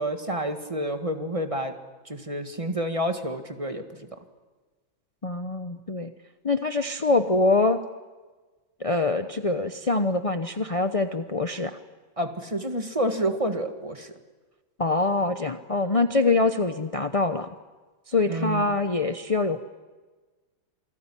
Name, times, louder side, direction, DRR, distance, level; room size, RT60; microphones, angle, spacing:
voice 1, 0.0-1.7 2.1-3.8 12.2-14.1 18.3-18.7, right 1 dB, 15° right, 7 dB, 1.7 m, -29 dB
voice 2, 5.2-6.1 6.4-7.8 8.8-11.8 14.8-17.5 18.1-19.6, left 3 dB, 40° left, 8 dB, 0.4 m, -24 dB
28.0 x 20.5 x 9.9 m, 1.3 s
omnidirectional pair, 2.2 m